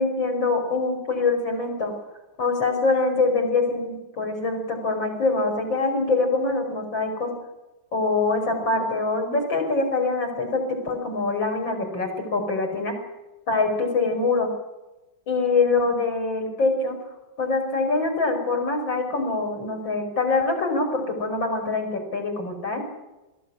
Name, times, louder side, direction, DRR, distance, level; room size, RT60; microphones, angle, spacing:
voice 1, 0.0-1.9 2.4-7.3 7.9-13.0 13.5-14.5 15.3-17.0 17.4-22.8, left 3 dB, 70° left, 3 dB, 6.1 m, -24 dB
21.5 x 16.0 x 9.8 m, 1.0 s
omnidirectional pair, 2.2 m